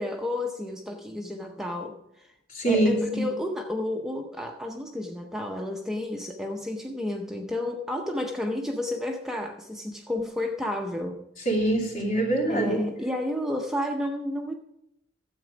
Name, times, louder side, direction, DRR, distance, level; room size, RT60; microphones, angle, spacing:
voice 1, 0.0-2.3 2.7-11.2 12.5-14.5, left 1 dB, ahead, 2 dB, 0.6 m, -31 dB
voice 2, 2.5-3.2 11.5-12.8, right 1 dB, 45° left, -1 dB, 2.7 m, -24 dB
13.0 x 8.0 x 5.0 m, 0.81 s
head